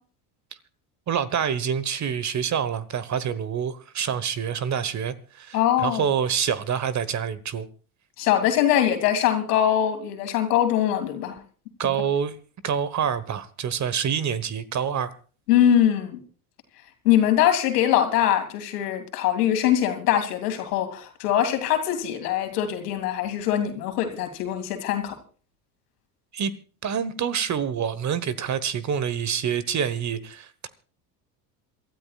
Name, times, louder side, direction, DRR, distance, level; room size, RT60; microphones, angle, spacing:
voice 1, 1.1-7.7 11.8-12.3 12.6-15.1 26.3-26.5 26.8-30.7, right 8 dB, 35° right, 1.2 m, -27 dB
voice 2, 5.5-6.0 8.2-11.4 15.5-16.2 17.0-25.1, left 11 dB, 80° left, 2.5 m, -22 dB
27.0 x 13.0 x 2.4 m
hypercardioid pair, 80°, 46 cm